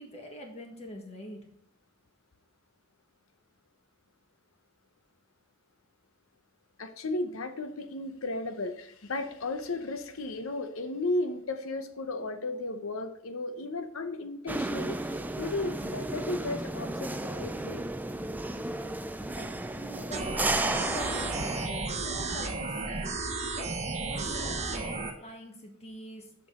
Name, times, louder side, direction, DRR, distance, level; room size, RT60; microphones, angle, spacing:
voice 1, 0.0-1.4 19.3-20.3 20.6-26.5, equal, 30° left, 2 dB, 1.6 m, -44 dB
voice 2, 6.8-17.8, left 2 dB, 70° left, 9 dB, 0.8 m, -34 dB
sound 1, 14.5-21.7, right 2 dB, 10° right, 0.4 m, -33 dB
sound 2, 20.1-25.1, right 3 dB, 35° right, 0.9 m, -33 dB
7.0 x 6.1 x 3.7 m, 0.71 s
head